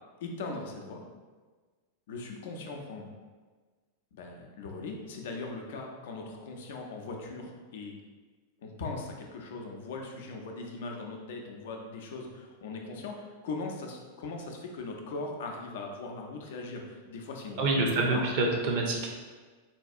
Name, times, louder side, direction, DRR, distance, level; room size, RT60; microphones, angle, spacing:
voice 1, 0.2-1.1 2.1-3.1 4.1-7.9 8.6-18.3, left 3 dB, 55° left, 2 dB, 0.5 m, -39 dB
voice 2, 17.6-19.1, right 2 dB, 45° right, 0 dB, 0.5 m, -27 dB
4.0 x 2.3 x 2.6 m, 1.4 s
figure-of-eight pair, 90°, 0 cm